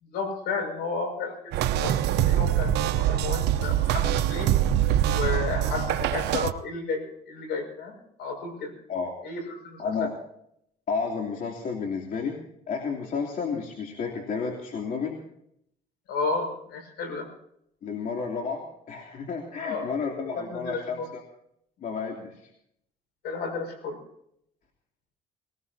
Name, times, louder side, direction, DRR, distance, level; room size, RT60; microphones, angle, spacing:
voice 1, 0.0-2.7 3.0-4.5 5.1-8.7 9.2-10.1 16.1-17.3 19.6-19.9 20.2-21.1 23.2-24.0, left 4 dB, 75° left, 5 dB, 6.2 m, -32 dB
sound 1, 1.5-6.5, right 11 dB, 85° right, 0.8 m, -24 dB
voice 2, 9.8-10.1 10.9-12.4 12.7-15.2 17.8-21.2 21.8-22.4, left 5 dB, 55° left, 1 dB, 3.1 m, -31 dB
20.5 x 19.0 x 2.8 m, 0.72 s
cardioid pair, 110°, 17 cm